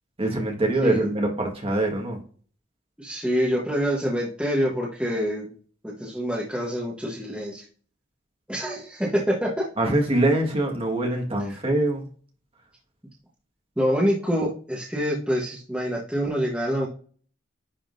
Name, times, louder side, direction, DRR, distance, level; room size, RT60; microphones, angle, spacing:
voice 1, 0.2-2.2 9.8-12.1, right 2 dB, 30° right, 1 dB, 1.5 m, -24 dB
voice 2, 3.0-5.5 5.8-7.6 8.5-9.6 11.5-11.6 13.8-16.9, equal, 5° right, -4 dB, 1.0 m, -26 dB
10.0 x 3.7 x 2.6 m, 0.42 s
head